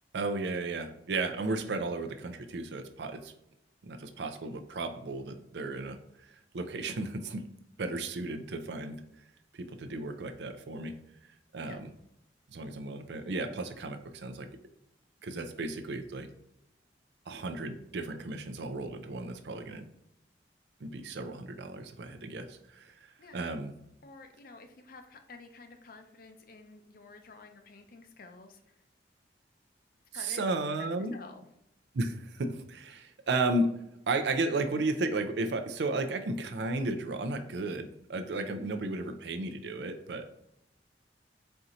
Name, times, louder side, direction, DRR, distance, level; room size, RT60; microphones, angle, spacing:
voice 1, 0.1-3.3 3.8-6.0 6.5-7.4 7.8-9.0 9.6-10.9 11.5-11.9 12.5-14.5 15.2-16.3 17.3-19.8 20.8-23.7 30.1-31.2 31.9-33.7 34.1-40.3, right 2 dB, 70° right, 7 dB, 0.5 m, -34 dB
voice 2, 24.0-28.7 30.1-30.4 30.8-31.4, left 4 dB, 55° left, 6 dB, 0.6 m, -51 dB
4.4 x 2.8 x 3.7 m, 0.80 s
head